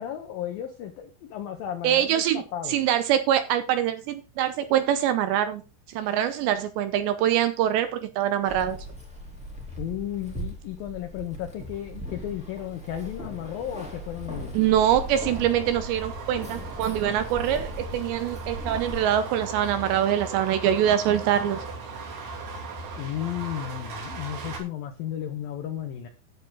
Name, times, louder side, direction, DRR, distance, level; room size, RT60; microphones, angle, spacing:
voice 1, 0.0-2.8 9.8-14.5 23.0-26.1, left 11 dB, 90° left, 5 dB, 2.0 m, -34 dB
voice 2, 1.8-2.4 2.7-5.6 5.9-8.8 14.5-21.6, right 10 dB, 80° right, 10 dB, 2.7 m, -24 dB
Keys jangling, 8.5-19.0, equal, 10° right, 0.4 m, -39 dB
sound 1, 15.1-24.6, right 3 dB, 60° right, 4.4 m, -37 dB
11.0 x 8.2 x 3.8 m, 0.30 s
omnidirectional pair, 5.6 m